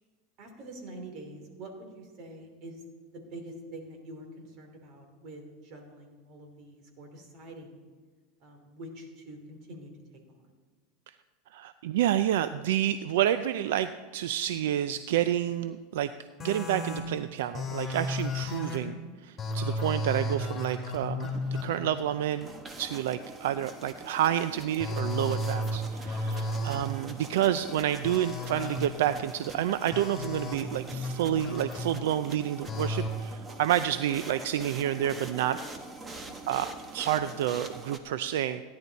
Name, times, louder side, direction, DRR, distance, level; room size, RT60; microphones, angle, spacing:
voice 1, 0.4-2.8 3.1-7.8 8.4-9.9 10.3-10.4 18.8-19.2 26.6-26.9 36.3-36.5, right 1 dB, 50° right, 3 dB, 2.9 m, -46 dB
voice 2, 11.5-16.1 16.4-18.9 19.5-22.5 22.8-35.6 36.5-38.6, right 11 dB, 80° right, 12 dB, 0.4 m, -29 dB
sound 1, 16.4-17.0 17.5-18.8 19.4-21.6 24.8-25.8 26.1-26.8 28.0-28.8 29.9-30.6 30.9-31.8 32.7-33.1, left 1 dB, 15° left, 3.6 m, -33 dB
sound 2, 21.1-38.0, right 2 dB, 20° right, 1.2 m, -44 dB
16.0 x 10.5 x 4.1 m, 1.5 s
supercardioid pair, 135°, 0 cm